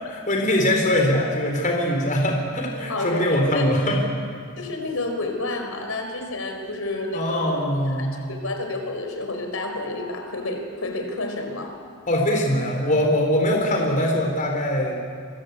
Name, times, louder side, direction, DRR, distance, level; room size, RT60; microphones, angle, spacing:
voice 1, 0.1-4.1 7.1-8.2 12.1-15.0, left 1 dB, 35° left, 1 dB, 4.3 m, -22 dB
voice 2, 2.9-3.7 4.6-7.6 8.0-11.8, left 2 dB, 70° left, 4 dB, 4.8 m, -30 dB
27.5 x 24.5 x 8.4 m, 2.1 s
head